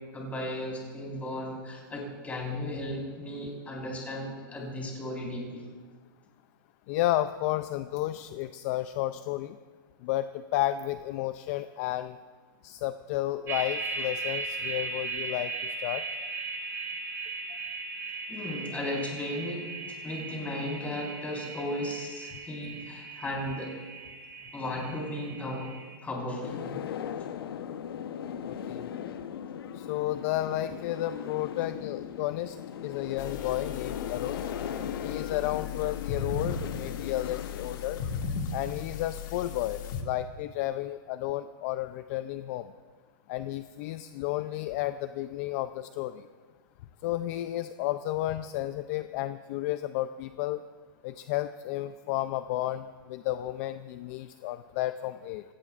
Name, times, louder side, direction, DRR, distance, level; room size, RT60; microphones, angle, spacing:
voice 1, 0.1-5.6 18.3-19.6 20.0-23.7 24.5-25.7 26.0-26.8, left 1 dB, 10° left, -2 dB, 4.5 m, -35 dB
voice 2, 6.9-9.6 10.0-12.2 12.6-16.0 28.4-28.9 29.7-32.6 32.8-34.4 35.0-38.0 38.5-42.7 43.3-46.2 47.0-50.6 51.0-55.4, left 14 dB, 40° left, 11 dB, 0.5 m, -32 dB
sound 1, 13.5-26.0, right 3 dB, 20° right, 1.7 m, -38 dB
sound 2, 26.4-39.9, left 8 dB, 85° left, 1.0 m, -39 dB
sound 3, 33.2-40.0, left 6 dB, 60° left, 1.9 m, -37 dB
26.0 x 17.5 x 2.5 m, 1.5 s
supercardioid pair, 155°, 12 cm